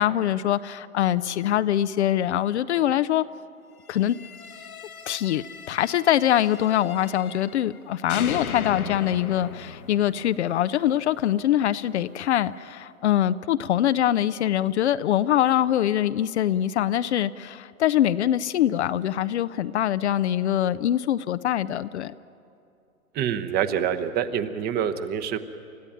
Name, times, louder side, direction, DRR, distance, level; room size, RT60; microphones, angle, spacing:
voice 1, 0.0-3.2 3.9-4.2 5.1-22.1, left 11 dB, 50° left, 14 dB, 0.7 m, -23 dB
sound 1, 3.9-7.8 8.1-11.1, left 6 dB, 80° left, 1.5 m, -38 dB
voice 2, 23.1-25.4, right 8 dB, 20° right, 10 dB, 1.0 m, -26 dB
29.0 x 14.5 x 9.0 m, 2.6 s
hypercardioid pair, 120°, 43 cm